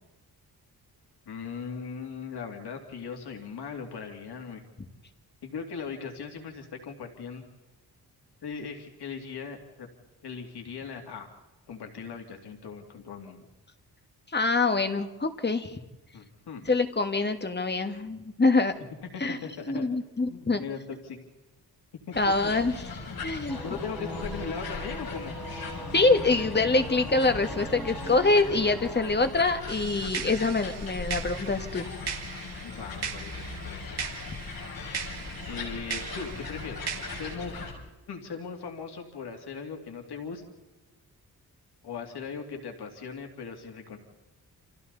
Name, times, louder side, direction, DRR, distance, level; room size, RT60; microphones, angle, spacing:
voice 1, 1.3-4.6 5.4-7.5 8.4-9.9 10.2-11.3 11.7-13.5 16.1-16.7 19.1-19.9 20.2-21.2 22.1-22.3 23.1-23.2 23.5-25.3 32.6-34.2 35.5-37.6 38.1-40.4 41.8-44.0, left 5 dB, 90° left, 3 dB, 2.9 m, -39 dB
voice 2, 14.3-15.8 16.7-18.7 19.2-19.4 19.7-20.6 22.2-22.7 23.2-23.6 25.9-31.9 32.4-32.5 34.9-35.2, left 3 dB, 25° left, 8 dB, 1.9 m, -25 dB
sound 1, 22.1-37.7, left 4 dB, 65° left, 6.4 m, -39 dB
Singing / Musical instrument, 23.5-29.1, right 2 dB, ahead, 5.3 m, -41 dB
sound 2, 29.7-37.3, right 6 dB, 85° right, 2.2 m, -39 dB
29.5 x 27.5 x 4.2 m, 1.1 s
wide cardioid pair, 100°, 38 cm